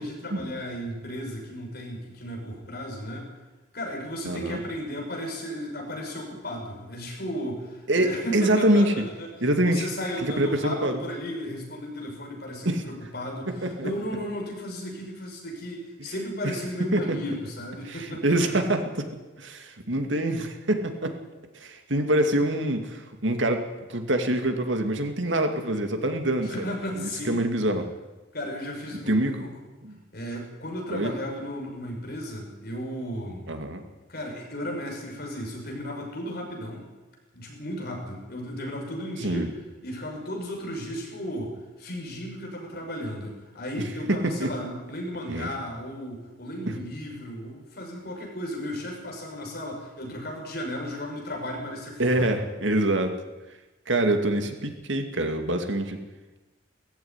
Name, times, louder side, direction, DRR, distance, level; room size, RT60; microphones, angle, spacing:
voice 1, 0.0-3.3 3.7-9.3 9.6-18.4 26.4-27.6 28.3-29.5 30.1-33.5 34.1-36.9 37.3-39.5 39.8-52.4, equal, 55° left, 1 dB, 6.1 m, -35 dB
voice 2, 4.2-4.6 7.9-8.9 9.4-9.9 10.2-11.0 12.6-12.8 13.6-13.9 16.9-17.2 17.9-19.1 19.4-21.1 21.5-26.5 26.9-27.8 29.1-29.4 29.8-29.9 30.9-31.1 33.5-33.8 39.2-39.5 44.2-44.5 45.3-45.5 52.0-53.1 53.9-56.0, right 1 dB, 75° right, 5 dB, 2.5 m, -25 dB
18.5 x 14.5 x 9.9 m, 1.2 s
head